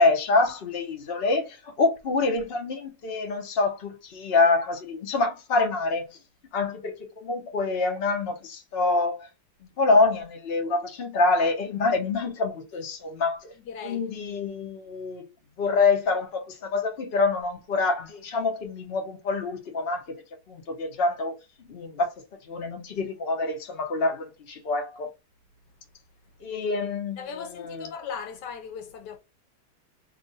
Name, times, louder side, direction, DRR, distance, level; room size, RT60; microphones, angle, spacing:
voice 1, 0.0-6.2 6.5-9.3 9.8-13.5 13.8-15.3 15.6-21.3 21.7-22.1 22.5-25.1 26.4-27.2 27.6-27.9, left 3 dB, 45° left, 0.9 m, -26 dB
voice 2, 13.6-14.1 27.2-29.2, left 6 dB, 80° left, 1.2 m, -38 dB
3.0 x 2.5 x 3.9 m
omnidirectional pair, 1.9 m